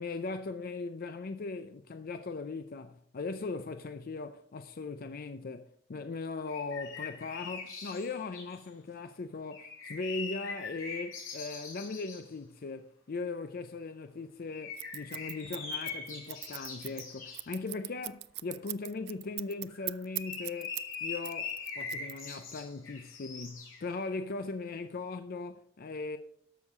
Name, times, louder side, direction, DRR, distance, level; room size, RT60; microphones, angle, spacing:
voice 1, 0.0-26.2, left 3 dB, 50° left, 0.5 m, -39 dB
sound 1, 6.5-8.7 9.5-12.3 14.5-17.5 19.7-24.2, left 5 dB, 85° left, 4.2 m, -42 dB
Scissors, 14.8-21.0 21.2-22.5, right 19 dB, 55° right, 0.4 m, -40 dB
13.0 x 6.4 x 4.8 m
head